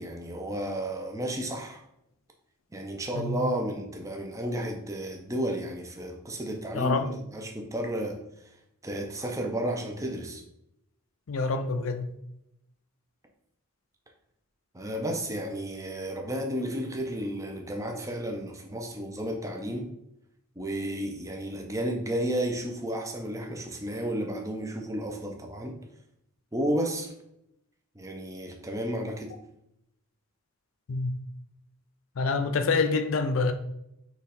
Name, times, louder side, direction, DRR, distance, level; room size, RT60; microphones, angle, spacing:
voice 1, 0.0-1.8 2.7-8.2 8.8-10.4 14.7-19.9 20.6-25.8 26.5-27.1 28.0-29.3, right 1 dB, 15° right, 0.6 m, -32 dB
voice 2, 6.7-7.1 11.3-12.1 30.9-31.1 32.2-33.5, left 4 dB, 70° left, 0.5 m, -26 dB
4.0 x 3.1 x 4.2 m
head